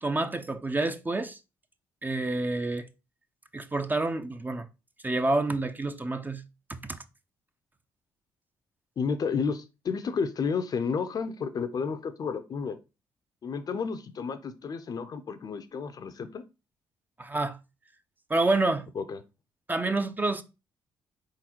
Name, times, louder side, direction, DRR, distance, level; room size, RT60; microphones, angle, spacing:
voice 1, 0.0-1.4 2.0-2.9 3.5-4.7 5.0-6.4 6.7-7.0 17.2-17.6 18.3-18.9 19.7-20.4, right 2 dB, 20° right, 0.5 m, -28 dB
voice 2, 9.0-12.8 13.4-16.4 19.0-19.2, left 5 dB, 45° left, 0.5 m, -31 dB
4.1 x 3.8 x 2.9 m
hypercardioid pair, 50°, 9 cm